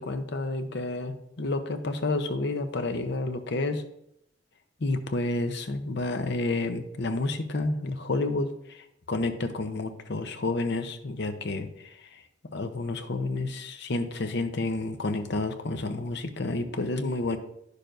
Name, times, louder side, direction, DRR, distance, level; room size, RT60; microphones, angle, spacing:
voice 1, 0.0-3.8 4.8-8.5 9.1-11.7 12.5-17.4, left 2 dB, 60° left, 7 dB, 0.7 m, -30 dB
10.5 x 6.6 x 2.6 m, 0.77 s
head